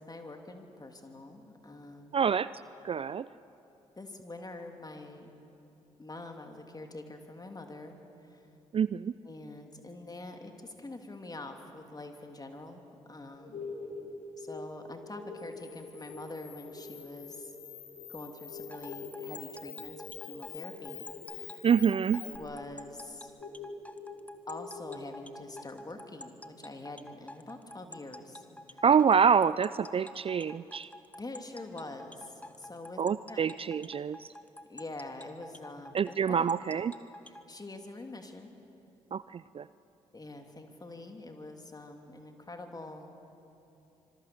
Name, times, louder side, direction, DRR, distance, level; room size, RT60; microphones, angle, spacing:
voice 1, 0.1-2.2 4.0-5.3 6.0-8.0 8.3-8.5 9.2-12.8 13.1-13.7 14.4-17.5 18.1-21.6 22.2-23.3 24.5-28.4 28.7-28.8 31.2-33.0 33.3-33.4 34.0-34.1 34.7-36.6 37.2-38.5 40.1-43.1, left 2 dB, 25° left, 4 dB, 3.0 m, -45 dB
voice 2, 2.1-2.5 2.8-3.2 8.7-9.1 21.6-22.2 28.8-30.9 33.0-34.2 35.9-36.9 39.1-39.2 39.5-39.6, right 7 dB, 35° right, 17 dB, 0.4 m, -26 dB
sound 1, 13.3-25.8, left 3 dB, 60° left, 3.5 m, -46 dB
Camera, 15.4-22.4, left 11 dB, 80° left, 4.3 m, -48 dB
sound 2, 18.7-37.4, left 1 dB, 10° left, 1.5 m, -48 dB
25.5 x 23.5 x 7.1 m, 2.9 s
hypercardioid pair, 40°, 16 cm